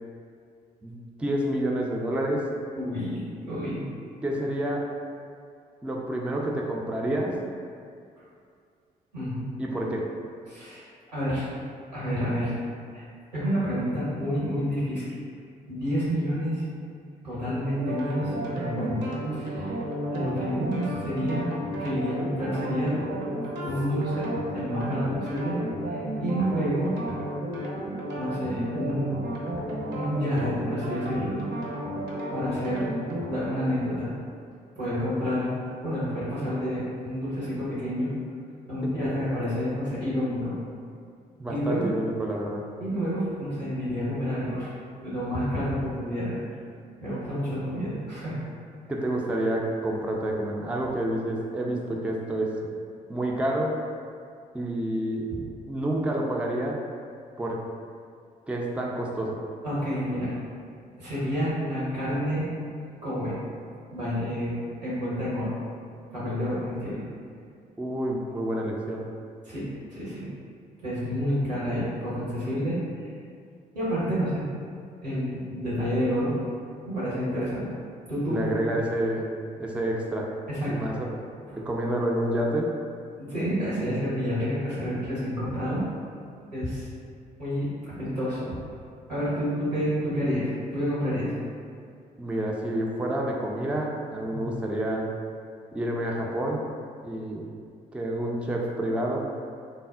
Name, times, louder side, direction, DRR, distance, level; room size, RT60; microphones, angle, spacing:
voice 1, 0.8-2.5 4.2-4.9 5.8-7.4 9.6-10.1 38.8-38.9 41.4-42.7 48.9-52.6 53.1-53.8 54.5-55.3 55.7-56.8 57.4-57.7 58.5-59.4 67.8-69.1 78.3-79.3 79.6-80.3 80.7-81.1 81.6-82.8 92.2-95.1 95.7-96.6 97.0-97.5 97.9-99.3, right 1 dB, 5° right, -1 dB, 0.4 m, -28 dB
voice 2, 2.7-3.8 9.1-9.5 10.5-11.5 11.9-12.6 12.9-13.0 13.3-15.0 15.7-16.6 17.2-19.7 20.1-21.4 21.8-22.9 23.6-25.6 25.9-26.9 28.2-29.1 29.9-31.3 32.3-32.8 33.3-34.1 34.8-35.5 35.8-38.1 38.7-40.6 41.5-41.9 42.8-44.7 45.0-46.4 47.0-48.4 59.6-60.4 61.0-62.5 63.0-63.4 63.9-65.5 66.1-67.0 69.4-70.3 70.8-73.1 73.7-74.4 75.0-76.4 76.9-77.7 78.1-78.7 80.5-80.9 81.5-81.6 83.2-85.8 86.5-86.9 87.4-88.5 89.1-91.3 94.2-94.5, equal, 90° right, -9 dB, 0.9 m, -29 dB
sound 1, 17.7-33.3, right 1 dB, 60° right, 0.6 m, -33 dB
3.3 x 2.0 x 2.3 m, 2.2 s
figure-of-eight pair, 45°, 21 cm